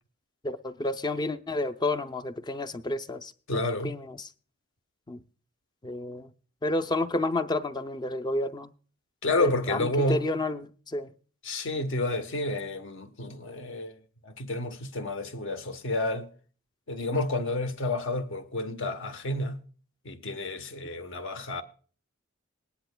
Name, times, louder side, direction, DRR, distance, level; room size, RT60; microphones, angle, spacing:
voice 1, 0.4-4.3 5.1-5.2 5.8-6.3 6.6-8.7 9.4-11.1, left 2 dB, 20° left, 0.5 m, -30 dB
voice 2, 3.5-3.9 9.2-10.2 11.4-16.3 16.9-19.6 20.0-21.6, left 2 dB, 60° left, 1.0 m, -30 dB
20.0 x 10.0 x 2.2 m
head